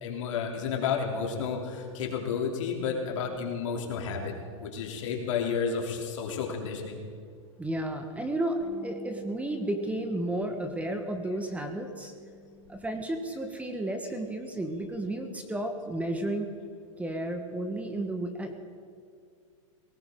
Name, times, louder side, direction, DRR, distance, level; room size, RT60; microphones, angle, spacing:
voice 1, 0.0-4.3 4.6-7.0, left 6 dB, 70° left, 0 dB, 3.1 m, -31 dB
voice 2, 7.6-12.1 12.7-16.5 17.0-18.5, right 1 dB, 10° right, 5 dB, 1.3 m, -32 dB
Bass guitar, 8.6-13.3 13.6-14.9, left 2 dB, 30° left, 5.1 m, -50 dB
18.5 x 18.5 x 3.8 m, 2.2 s
hypercardioid pair, 120°, 17 cm